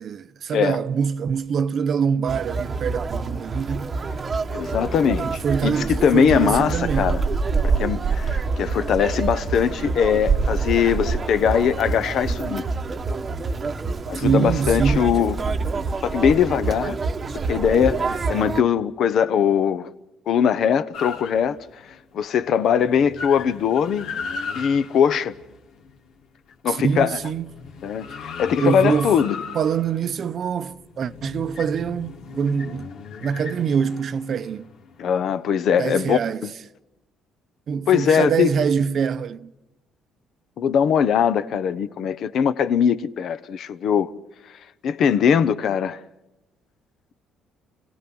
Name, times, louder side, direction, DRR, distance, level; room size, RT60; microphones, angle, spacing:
voice 1, 0.0-3.9 5.2-7.2 14.1-15.0 26.7-27.5 28.6-29.1 29.5-32.9 33.2-34.6 35.8-36.4 37.7-39.5, right 6 dB, 45° right, 0.7 m, -24 dB
Conversation, 2.3-18.6, right 4 dB, 25° right, 1.0 m, -26 dB
voice 2, 4.5-7.2 7.6-12.6 14.1-15.4 16.0-17.0 17.5-19.9 20.3-21.6 22.1-24.1 24.5-25.3 26.6-27.2 27.8-29.4 35.0-36.5 37.9-38.5 40.6-44.1 44.8-46.0, left 8 dB, 55° left, 0.9 m, -21 dB
sound 1, 20.9-21.9 22.3-22.4 22.7-26.3 26.8-35.3, left 5 dB, 85° left, 3.3 m, -37 dB
29.0 x 17.0 x 6.1 m
cardioid pair, 155°, 0 cm